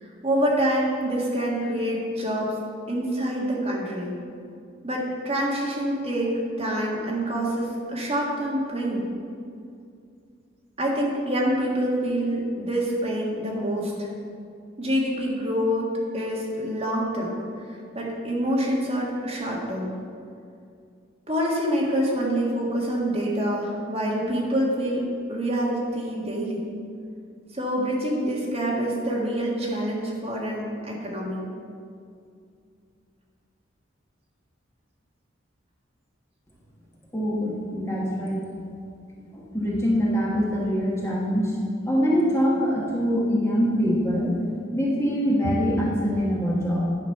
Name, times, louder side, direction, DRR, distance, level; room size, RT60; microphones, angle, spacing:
voice 1, 0.0-2.5 2.9-4.1 4.8-6.3 6.6-9.1 10.8-14.1 14.8-15.9 16.1-17.4 17.9-19.9 21.3-26.7 27.5-31.5, equal, 30° right, -3 dB, 1.7 m, -26 dB
voice 2, 37.1-38.4 39.3-41.6 41.9-44.3 44.7-46.8, equal, 15° left, -5 dB, 1.3 m, -24 dB
10.5 x 5.2 x 6.5 m, 2.4 s
head